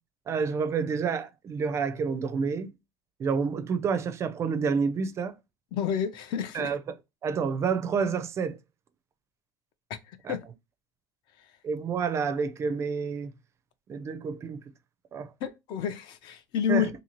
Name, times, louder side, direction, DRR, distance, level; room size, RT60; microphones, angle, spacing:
voice 1, 0.3-2.7 3.2-5.4 6.5-6.8 7.2-8.6 10.2-10.3 11.6-13.3 13.9-14.6 15.1-15.3 16.7-16.9, right 5 dB, 30° right, 0.4 m, -29 dB
voice 2, 5.7-6.7 9.9-10.4 15.4-16.9, left 8 dB, 50° left, 0.5 m, -30 dB
2.7 x 2.7 x 2.9 m
supercardioid pair, 130°, 10 cm